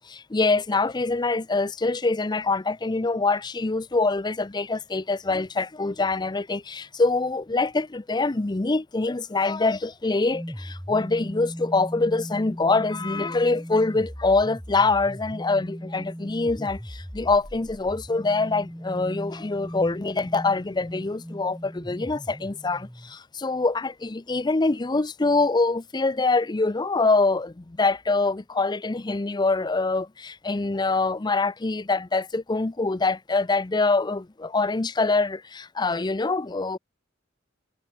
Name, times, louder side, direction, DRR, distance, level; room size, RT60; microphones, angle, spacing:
voice 1, 0.1-36.8, left 3 dB, 20° left, 0.6 m, -24 dB
sound 1, 10.3-23.2, equal, ahead, 2.1 m, -38 dB
head